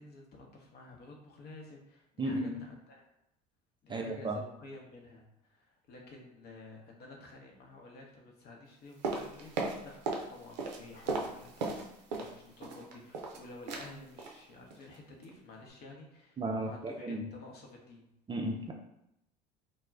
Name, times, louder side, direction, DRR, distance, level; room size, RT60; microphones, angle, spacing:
voice 1, 0.0-3.1 3.8-18.1, left 2 dB, 50° left, 0 dB, 0.8 m, -52 dB
voice 2, 2.2-2.6 3.9-4.4 16.4-17.3 18.3-18.7, right 1 dB, 20° right, 2 dB, 0.4 m, -34 dB
sound 1, 9.0-10.3 10.5-12.3 12.6-13.4 13.7-13.9 14.2-14.4 14.7-15.0 15.2-15.3, right 3 dB, 85° right, 0.5 m, -36 dB
2.2 x 2.0 x 3.4 m, 0.81 s
hypercardioid pair, 70°, 21 cm